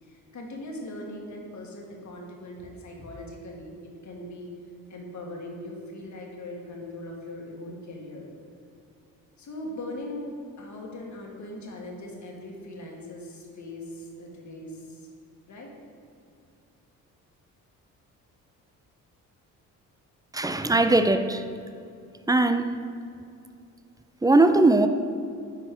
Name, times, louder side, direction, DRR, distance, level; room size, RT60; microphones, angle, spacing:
voice 1, 0.0-4.5 4.9-8.3 9.4-15.1 15.4-15.7, left 1 dB, 50° left, 0 dB, 1.7 m, -40 dB
voice 2, 20.3-21.4 22.3-22.7 24.2-24.9, right 2 dB, 10° right, 8 dB, 0.4 m, -20 dB
9.8 x 4.3 x 3.7 m, 2.5 s
supercardioid pair, 65°, 37 cm